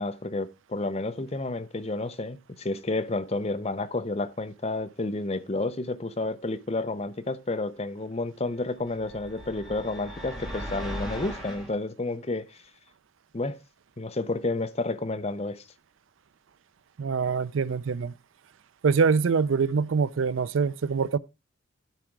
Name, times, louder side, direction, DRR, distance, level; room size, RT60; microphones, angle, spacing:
voice 1, 0.0-12.6 13.3-13.6 14.0-15.6, left 2 dB, 30° left, 0.6 m, -30 dB
sound 1, 8.8-11.7, equal, ahead, 2.5 m, -38 dB
voice 2, 17.0-18.1 18.8-21.2, right 5 dB, 70° right, 0.4 m, -24 dB
12.5 x 5.0 x 4.5 m
head